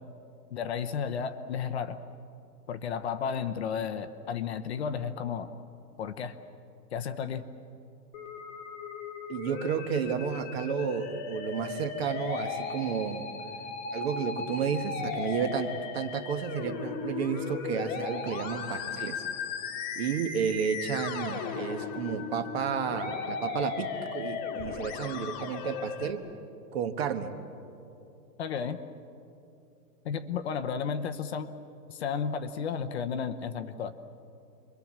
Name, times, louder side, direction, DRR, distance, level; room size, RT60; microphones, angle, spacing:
voice 1, 0.5-2.0 2.7-5.5 6.0-6.3 6.9-7.4 28.4-28.8 30.0-31.5 31.9-33.9, left 7 dB, 40° left, 8 dB, 0.9 m, -33 dB
Musical instrument, 8.1-26.1, left 6 dB, 20° left, 1.4 m, -36 dB
voice 2, 9.3-13.3 13.9-19.2 20.0-26.3 26.7-27.3, right 7 dB, 40° right, 8 dB, 1.3 m, -32 dB
28.5 x 22.5 x 7.4 m, 2.7 s
hypercardioid pair, 170°, 49 cm